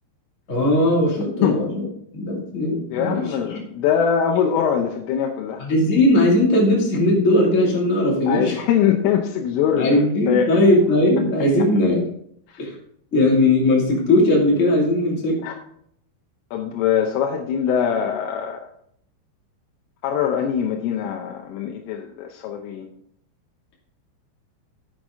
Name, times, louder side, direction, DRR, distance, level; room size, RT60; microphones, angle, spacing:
voice 1, 0.5-1.8 2.1-3.6 5.6-8.6 9.8-12.1 12.6-12.7 13.1-15.4, left 1 dB, 40° left, -3 dB, 1.0 m, -18 dB
voice 2, 2.9-5.6 8.3-10.5 12.5-12.6 15.4-15.5 16.5-18.6 20.0-22.9, left 8 dB, 80° left, 2 dB, 3.3 m, -22 dB
11.0 x 7.9 x 3.8 m, 0.68 s
omnidirectional pair, 6.0 m